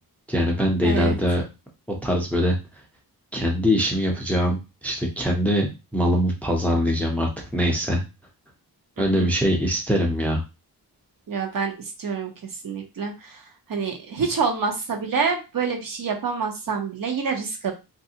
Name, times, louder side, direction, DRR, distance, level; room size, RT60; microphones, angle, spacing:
voice 1, 0.3-1.4 2.0-2.6 3.3-8.0 9.0-10.4, equal, 5° left, 1 dB, 0.4 m, -22 dB
voice 2, 0.8-1.2 9.0-9.3 11.3-11.7 12.0-12.3 12.6-13.4 13.7-17.7, right 5 dB, 55° right, 3 dB, 0.7 m, -27 dB
3.2 x 2.5 x 2.7 m, 0.27 s
wide cardioid pair, 175°, 41 cm